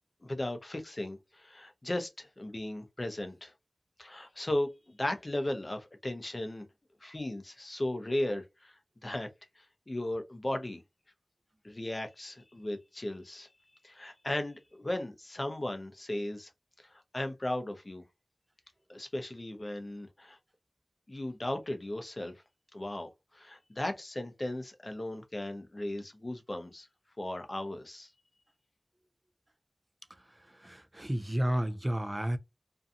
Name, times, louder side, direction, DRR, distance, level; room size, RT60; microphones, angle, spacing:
voice 1, 0.2-3.5 4.0-6.7 7.0-9.3 9.6-10.8 11.6-13.5 13.8-16.5 16.8-18.0 18.9-20.4 21.1-22.4 22.7-26.9 27.2-28.1, left 1 dB, 35° left, 0.6 m, -36 dB
voice 2, 30.1-32.4, equal, 25° right, 0.4 m, -32 dB
2.6 x 2.3 x 2.6 m
wide cardioid pair, 60°, 0 cm